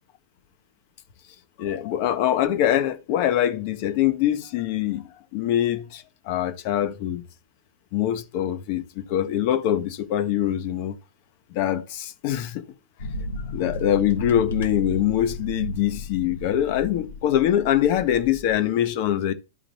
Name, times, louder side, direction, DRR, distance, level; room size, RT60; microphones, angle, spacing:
voice 1, 1.6-5.0 5.3-7.2 7.9-8.8 9.1-10.9 11.5-12.7 13.5-19.3, left 11 dB, 45° left, 1.0 m, -23 dB
sound 1, 13.0-18.6, equal, 65° left, 1.2 m, -34 dB
13.0 x 5.1 x 2.9 m
figure-of-eight pair, 95°, 0 cm